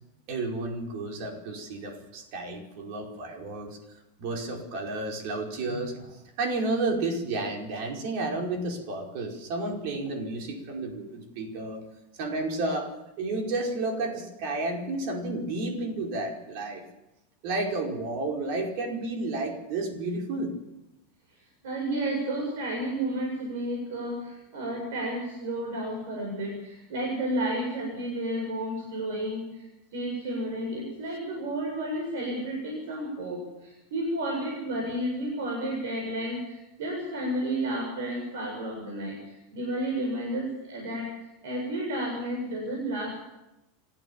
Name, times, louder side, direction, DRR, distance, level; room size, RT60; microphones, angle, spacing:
voice 1, 0.3-3.8 4.2-6.0 6.4-11.8 12.2-12.9 13.2-16.8 17.4-20.5, right 2 dB, 55° right, 1 dB, 5.1 m, -31 dB
voice 2, 5.7-6.1 21.6-29.7 29.9-41.1 41.4-43.2, right 1 dB, 75° right, 0 dB, 7.5 m, -32 dB
27.5 x 16.0 x 7.3 m, 0.92 s
supercardioid pair, 155°, 0 cm